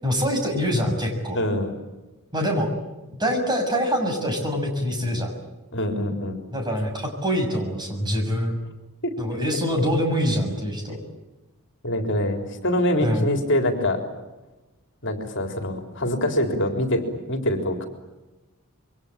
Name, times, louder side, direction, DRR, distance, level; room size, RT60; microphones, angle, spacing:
voice 1, 0.0-1.4 2.3-2.7 3.1-5.3 6.5-8.6 9.2-11.0 13.0-13.3, equal, 20° right, 3 dB, 6.8 m, -24 dB
voice 2, 1.3-1.8 5.7-6.4 9.0-9.1 10.9-11.0 11.8-14.0 15.0-17.0 17.3-17.9, left 1 dB, 55° left, 5 dB, 3.9 m, -24 dB
27.5 x 24.0 x 8.8 m, 1.1 s
head